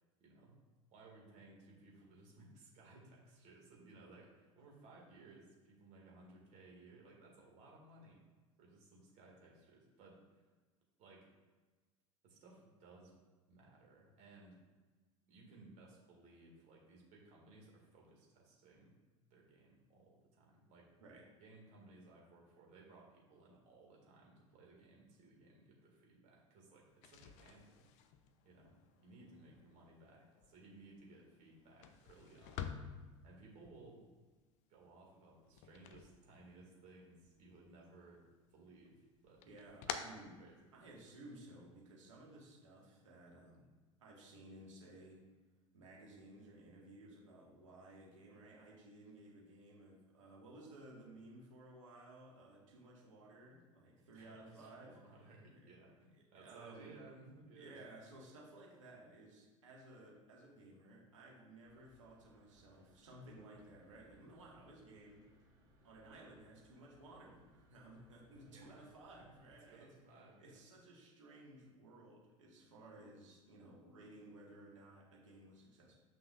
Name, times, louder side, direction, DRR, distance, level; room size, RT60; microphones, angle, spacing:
voice 1, 0.2-0.6 0.9-8.2 8.6-10.4 11.0-11.3 12.2-13.1 13.5-14.6 15.3-18.9 19.3-20.9 21.4-27.9 28.4-32.9 33.2-34.1 34.7-38.2 38.5-39.4 40.4-40.7 54.1-54.7 55.0-57.8 68.4-68.9 69.2-69.3 69.6-70.6, right 2 dB, 45° right, -2 dB, 2.0 m, -60 dB
sound 1, 26.9-36.9 37.2-38.1 38.4-41.1, left 8 dB, 45° left, 0.5 m, -51 dB
voice 2, 39.5-40.4 40.7-43.7 44.0-45.2 45.7-55.0 56.1-56.9 57.5-65.2 65.8-69.9 70.4-75.9, right 2 dB, 70° right, -3 dB, 1.7 m, -57 dB
sound 2, 61.6-69.6, equal, 25° right, 1.9 m, -70 dB
7.5 x 5.8 x 2.5 m, 1.3 s
figure-of-eight pair, 75°, 17 cm